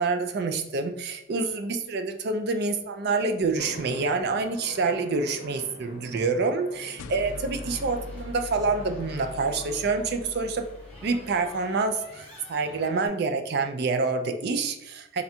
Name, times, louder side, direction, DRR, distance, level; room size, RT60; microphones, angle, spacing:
voice 1, 0.0-10.7 11.0-15.2, right 4 dB, 50° right, 7 dB, 0.4 m, -27 dB
sound 1, 3.6-9.9, left 1 dB, 45° left, 0.7 m, -44 dB
sound 2, 7.0-11.6, left 3 dB, 85° left, 0.4 m, -42 dB
sound 3, 7.6-13.1, left 1 dB, 5° left, 1.1 m, -49 dB
3.5 x 2.4 x 4.2 m, 0.88 s
head